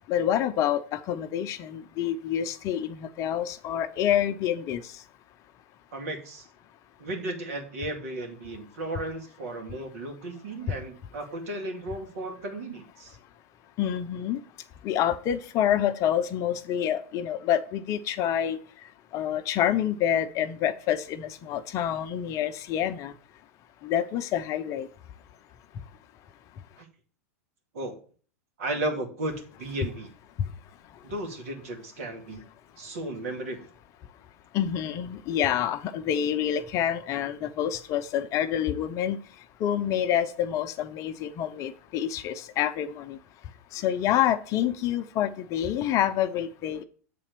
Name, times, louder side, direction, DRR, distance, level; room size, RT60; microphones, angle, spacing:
voice 1, 0.1-4.9 13.8-14.4 14.8-18.6 19.1-23.1 23.8-24.9 34.5-39.2 39.6-43.2 43.7-46.8, left 10 dB, 40° left, 0.7 m, -27 dB
voice 2, 5.9-6.5 7.0-13.2 26.8-26.9 27.7-28.0 28.6-30.1 31.0-32.4 32.8-33.6, right 1 dB, 65° right, 2.2 m, -34 dB
7.7 x 4.2 x 6.8 m
hypercardioid pair, 100°, 8 cm